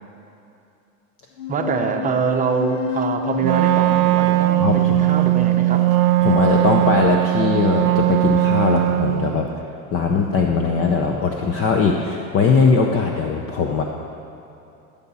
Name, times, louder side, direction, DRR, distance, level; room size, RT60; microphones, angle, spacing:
sound 1, 1.4-6.3, left 7 dB, 70° left, 1.0 m, -31 dB
voice 1, 1.5-5.9, right 5 dB, 20° right, 3 dB, 0.8 m, -24 dB
Wind instrument woodwind instrument, 3.4-9.4, right 15 dB, 80° right, 0.6 m, -18 dB
voice 2, 4.6-5.0 6.2-9.5 9.9-13.8, left 5 dB, 35° left, 2 dB, 0.7 m, -20 dB
15.5 x 7.0 x 4.2 m, 2.8 s
supercardioid pair, 125°, 42 cm